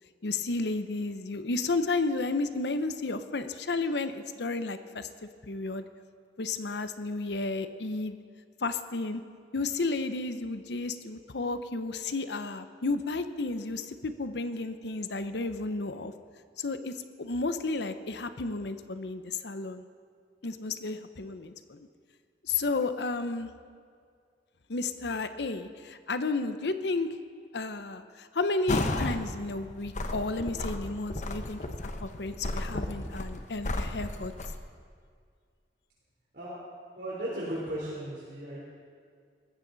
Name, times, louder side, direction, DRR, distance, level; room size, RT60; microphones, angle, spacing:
voice 1, 0.2-5.1 5.4-5.8 6.4-8.2 8.6-9.2 9.5-16.1 16.6-19.8 20.4-21.9 22.4-23.5 24.7-27.1 27.5-31.6 32.0-34.3, left 3 dB, 70° left, 10 dB, 0.8 m, -32 dB
sound 1, 28.7-29.2 29.6-34.6, left 1 dB, 45° left, 1.0 m, -33 dB
voice 2, 37.0-38.6, right 1 dB, 60° right, -8 dB, 3.6 m, -36 dB
19.5 x 14.5 x 4.0 m, 2.1 s
head